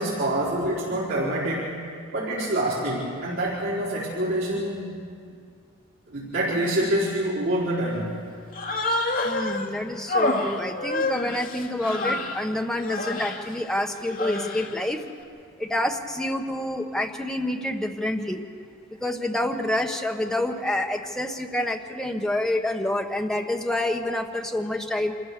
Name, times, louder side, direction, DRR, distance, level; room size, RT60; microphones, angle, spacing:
voice 1, 0.0-1.7 2.1-4.9 6.1-8.2, right 1 dB, 75° right, -9 dB, 4.7 m, -26 dB
Human voice, 8.5-9.7 10.1-12.4 12.8-13.4 14.0-14.8, left 2 dB, 45° left, 2.1 m, -28 dB
voice 2, 9.2-15.0 15.6-18.4 19.0-25.1, left 1 dB, 5° left, 2 dB, 1.2 m, -27 dB
27.0 x 15.0 x 6.8 m, 2.2 s
head